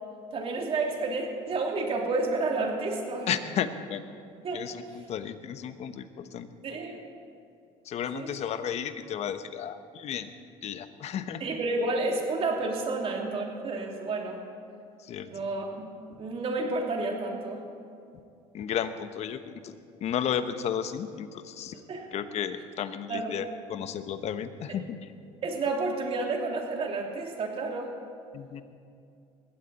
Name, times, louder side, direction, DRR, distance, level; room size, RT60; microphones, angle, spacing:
voice 1, 0.3-3.3 4.4-4.7 4.9-5.0 6.6-7.0 8.1-8.4 11.4-14.4 15.3-15.9 16.2-17.6 21.9-22.1 23.1-23.4 24.7-24.8 25.4-27.9, right 3 dB, 45° right, 0 dB, 3.1 m, -30 dB
voice 2, 3.3-4.0 4.5-6.1 6.3-6.5 7.9-10.3 10.6-11.4 15.1-15.3 18.5-19.7 20.0-21.7 22.1-25.0 28.3-28.6, left 9 dB, 55° left, 10 dB, 1.1 m, -33 dB
21.0 x 16.0 x 4.2 m, 2.5 s
supercardioid pair, 95°, 13 cm